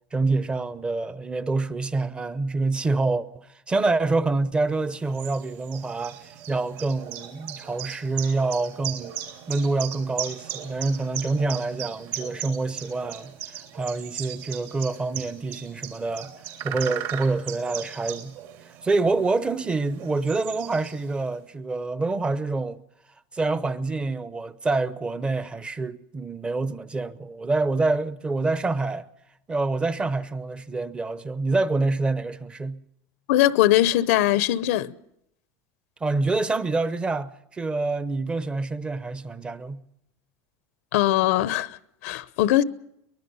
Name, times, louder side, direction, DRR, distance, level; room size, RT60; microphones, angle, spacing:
voice 1, 0.1-9.1 9.5-16.3 16.6-18.3 18.8-22.8 23.3-29.1 29.5-32.8 36.0-39.8, right 3 dB, 15° right, 0.8 m, -26 dB
sound 1, 4.7-21.3, right 11 dB, 55° right, 3.5 m, -38 dB
voice 2, 33.3-34.9 40.9-42.6, left 14 dB, 80° left, 0.8 m, -21 dB
23.5 x 20.5 x 5.5 m
cardioid pair, 155°, 8 cm